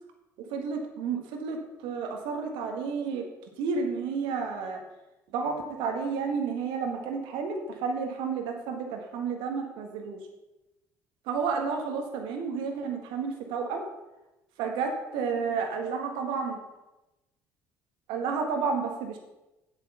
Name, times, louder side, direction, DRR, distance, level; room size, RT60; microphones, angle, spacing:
voice 1, 0.5-3.2 3.6-4.8 5.3-10.2 11.3-13.8 14.6-16.6 18.1-19.2, right 5 dB, 70° right, 3 dB, 1.6 m, -31 dB
8.3 x 8.1 x 6.8 m, 0.99 s
hypercardioid pair, 55°, 9 cm